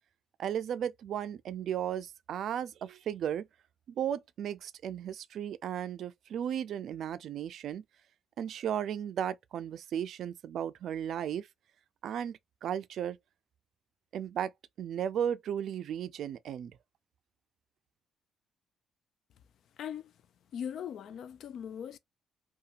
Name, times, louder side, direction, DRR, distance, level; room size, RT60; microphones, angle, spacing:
voice 1, 0.4-3.5 4.0-7.8 8.4-11.5 12.0-13.2 14.1-14.5 14.8-16.7, right 9 dB, 70° right, 0.3 m, -35 dB
voice 2, 19.8-20.1 20.5-22.0, left 8 dB, 70° left, 0.3 m, -39 dB
2.8 x 2.2 x 2.5 m
cardioid pair, 90°, 0 cm